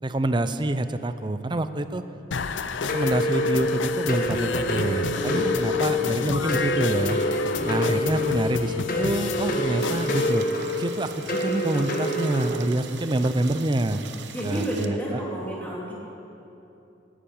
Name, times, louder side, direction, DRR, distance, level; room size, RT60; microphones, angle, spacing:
voice 1, 0.0-2.0 2.8-7.2 7.7-10.4 10.7-14.0 14.4-15.0, right 1 dB, 25° right, 11 dB, 0.6 m, -26 dB
sound 1, 2.3-10.3, left 5 dB, 85° left, 0.6 m, -32 dB
sound 2, 2.9-12.5, left 1 dB, 50° left, 1.5 m, -27 dB
voice 2, 5.7-6.7 7.5-8.2 14.3-15.9, right 1 dB, 10° left, -5 dB, 3.1 m, -33 dB
sound 3, 9.8-14.9, right 6 dB, 65° right, 0.9 m, -42 dB
18.0 x 10.0 x 7.1 m, 2.9 s
head